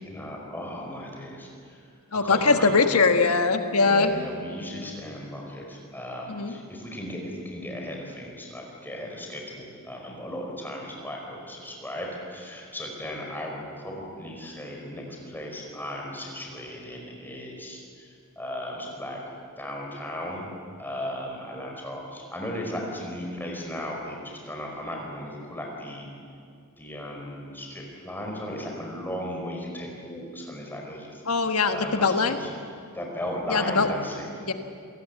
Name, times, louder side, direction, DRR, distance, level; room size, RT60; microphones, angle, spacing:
voice 1, 0.0-3.0 3.8-19.2 19.6-26.1 26.8-31.2 31.7-32.5 32.9-34.3, left 1 dB, 10° left, 0 dB, 5.0 m, -36 dB
voice 2, 2.1-4.1 6.3-6.5 31.3-32.4 33.5-33.9 34.5-34.6, left 4 dB, 75° left, 7 dB, 1.4 m, -21 dB
27.5 x 18.5 x 8.2 m, 2.3 s
head